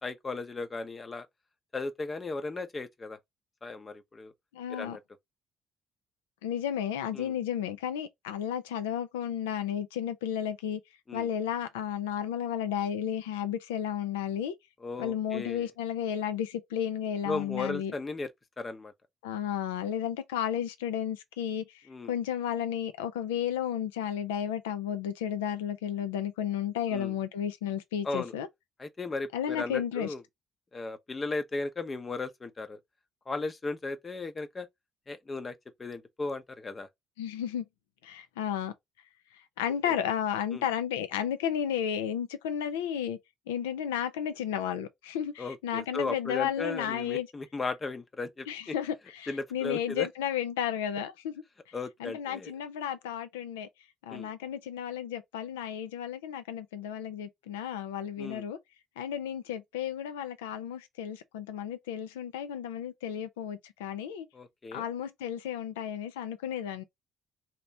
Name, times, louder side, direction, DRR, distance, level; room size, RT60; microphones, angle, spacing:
voice 1, 0.0-1.3 1.7-3.2 3.6-4.3 4.7-5.0 7.1-7.3 11.1-11.3 14.8-15.7 17.2-18.3 18.6-18.9 21.9-22.1 26.9-27.1 28.0-28.3 28.8-30.2 30.7-32.8 33.3-34.7 35.1-36.9 39.9-40.0 40.5-40.6 45.4-48.7 49.3-50.1 51.7-52.5 54.1-54.3 58.2-58.4 64.3-64.8, left 3 dB, 30° left, 0.7 m, -36 dB
voice 2, 4.5-5.0 6.4-10.8 11.1-14.5 15.0-17.9 19.2-28.5 29.3-30.1 37.2-37.6 38.0-38.7 39.6-43.2 43.5-47.3 48.5-51.3 52.0-53.7 54.0-58.6 59.0-64.3 64.7-66.8, left 9 dB, 80° left, 0.5 m, -33 dB
2.9 x 2.9 x 3.4 m
hypercardioid pair, 50°, 0 cm